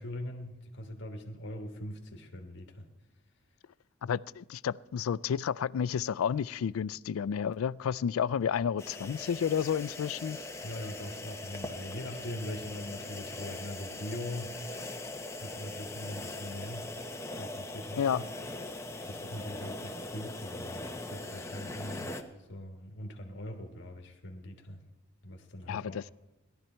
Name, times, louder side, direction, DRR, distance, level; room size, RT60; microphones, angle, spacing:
voice 1, 0.0-2.9 10.6-14.6 15.4-16.9 17.4-18.3 19.1-24.8 25.2-26.1, left 1 dB, 60° left, 1.5 m, -42 dB
voice 2, 4.0-10.4 18.0-18.2 25.7-26.0, left 8 dB, 90° left, 0.3 m, -31 dB
sound 1, 8.8-22.2, left 2 dB, 15° left, 0.9 m, -41 dB
18.0 x 12.0 x 4.4 m
head